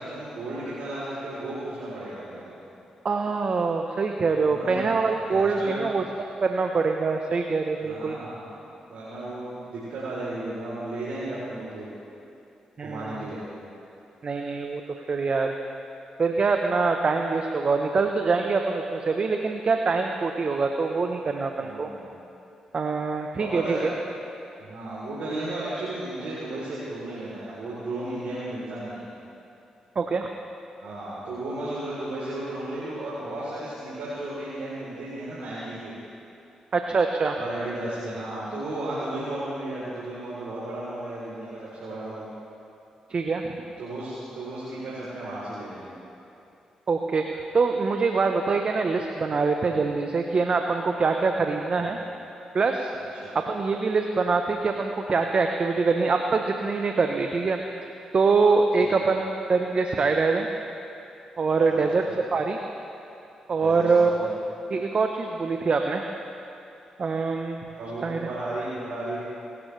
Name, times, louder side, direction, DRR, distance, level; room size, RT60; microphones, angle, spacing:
voice 1, 0.0-2.5 4.4-5.8 7.8-8.5 8.9-11.9 12.8-13.5 21.6-22.1 23.4-23.9 24.6-29.1 30.8-35.9 37.4-42.3 43.8-46.0 51.7-52.1 53.0-53.4 58.8-59.0 61.5-62.2 63.6-64.3 67.7-69.2, right 1 dB, 75° right, -9 dB, 3.7 m, -34 dB
voice 2, 3.0-6.0 6.4-8.2 12.8-13.3 14.2-14.8 15.1-15.5 16.2-21.9 22.7-23.9 30.0-30.3 36.7-37.4 43.1-43.5 46.9-52.0 52.5-52.9 53.3-57.6 58.1-60.5 61.4-62.0 62.3-62.6 63.5-64.3 64.7-66.0 67.0-67.6 68.0-68.2, right 4 dB, 50° right, 4 dB, 0.9 m, -24 dB
23.5 x 13.0 x 3.3 m, 2.8 s
supercardioid pair, 50°, 2 cm